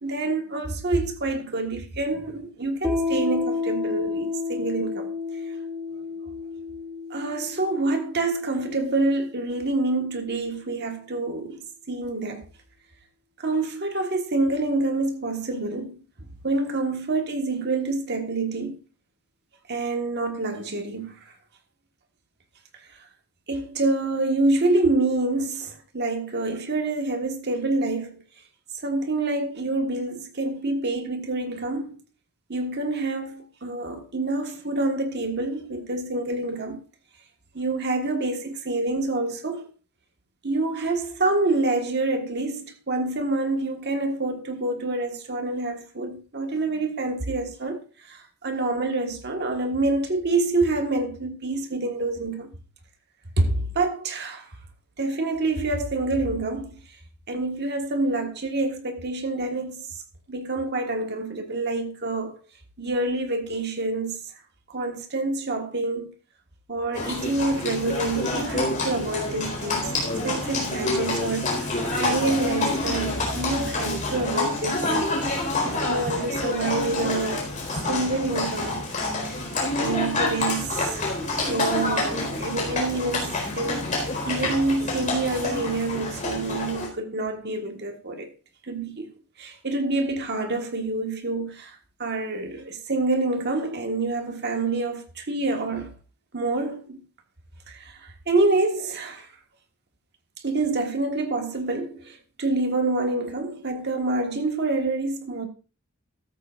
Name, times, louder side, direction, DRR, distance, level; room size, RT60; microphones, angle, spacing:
voice 1, 0.0-5.1 7.1-12.4 13.4-16.0 16.4-18.8 19.7-21.1 23.5-28.2 28.8-32.0 32.5-36.8 37.5-39.7 40.4-52.5 53.4-54.5 55.0-56.8 57.3-59.9 60.3-62.4 62.8-64.2 64.7-66.1 66.7-75.3 75.6-77.5 77.9-78.8 79.8-88.3 88.7-89.1 89.4-91.7 92.0-95.9 96.3-97.0 97.7-99.3 100.4-105.5, right 2 dB, 50° right, 1.5 m, -27 dB
Piano, 2.8-10.1, left 4 dB, 5° right, 2.2 m, -31 dB
Livestock farm animals working animals, 66.9-86.9, left 2 dB, 35° left, 4.3 m, -27 dB
14.0 x 13.0 x 2.5 m
head